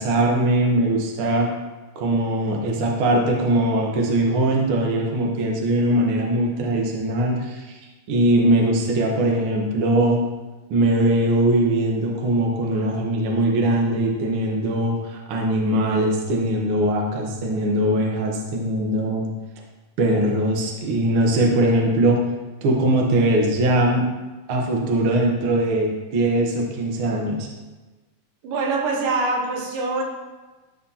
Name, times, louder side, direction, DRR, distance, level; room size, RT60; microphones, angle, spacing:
voice 1, 0.0-1.5 1.9-7.8 8.1-10.2 10.7-19.3 20.0-22.2 22.6-24.0 24.5-27.5, right 1 dB, 55° right, 0 dB, 1.6 m, -21 dB
voice 2, 28.4-30.0, right 3 dB, 85° right, 1 dB, 2.7 m, -24 dB
12.5 x 6.0 x 2.9 m, 1.2 s
omnidirectional pair, 3.8 m